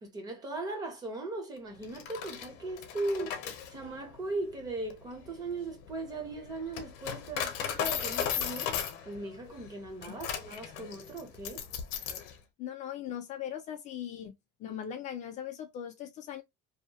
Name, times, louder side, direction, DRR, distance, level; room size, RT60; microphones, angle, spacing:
voice 1, 0.0-3.4 3.7-11.6, right 2 dB, 20° right, 0.6 m, -38 dB
Coin (dropping), 1.8-12.3, left 8 dB, 65° left, 0.7 m, -37 dB
voice 2, 12.6-14.3 14.6-16.4, left 10 dB, 35° left, 0.4 m, -39 dB
2.8 x 2.1 x 2.7 m
cardioid pair, 180°, 21 cm